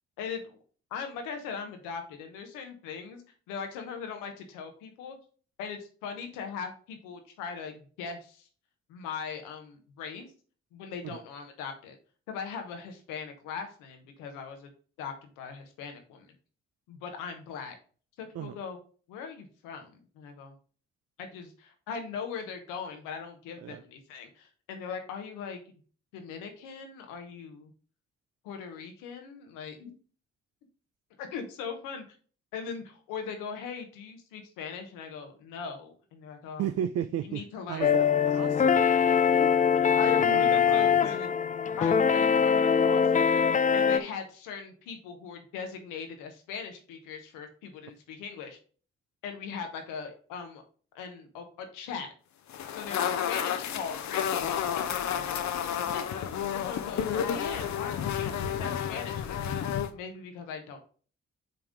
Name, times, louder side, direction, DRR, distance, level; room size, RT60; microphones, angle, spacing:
voice 1, 0.2-0.6 0.9-5.2 5.6-8.5 8.9-10.3 10.7-11.9 12.3-14.7 15.0-16.3 16.9-17.7 18.2-18.8 19.1-20.5 21.2-25.6 26.1-27.7 28.4-29.9 31.2-32.0 32.5-36.6 37.2-37.9 39.4-39.5 39.9-41.3 41.8-43.4 43.7-48.6 49.2-50.6 50.9-52.1 52.7-59.5 59.9-60.8, left 6 dB, 85° left, 5 dB, 1.0 m, -40 dB
voice 2, 36.6-37.4 37.7-38.9 40.2-41.0, right 10 dB, 55° right, 11 dB, 0.5 m, -34 dB
sound 1, 37.8-44.0, left 7 dB, 25° left, 0.4 m, -23 dB
sound 2, 52.5-59.9, left 8 dB, 65° left, 0.7 m, -31 dB
5.7 x 3.6 x 5.1 m, 0.41 s
hypercardioid pair, 40°, 31 cm